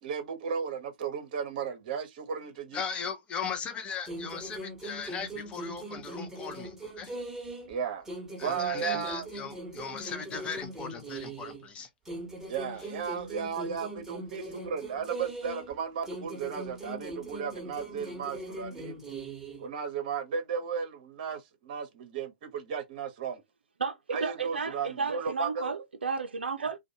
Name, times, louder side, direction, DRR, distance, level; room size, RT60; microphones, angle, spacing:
voice 1, 0.0-2.8 7.7-8.1 8.4-9.3 12.5-19.0 19.6-23.4 24.1-25.7, right 6 dB, 45° right, 0.8 m, -35 dB
voice 2, 2.7-7.1 8.4-11.9, left 6 dB, 20° left, 0.6 m, -38 dB
sound 1, 4.1-7.8 8.1-11.7 12.1-15.8 16.1-19.7, right 1 dB, 5° right, 1.0 m, -41 dB
voice 3, 23.8-26.8, right 5 dB, 75° right, 0.4 m, -33 dB
2.5 x 2.2 x 2.7 m
figure-of-eight pair, 115°, 6 cm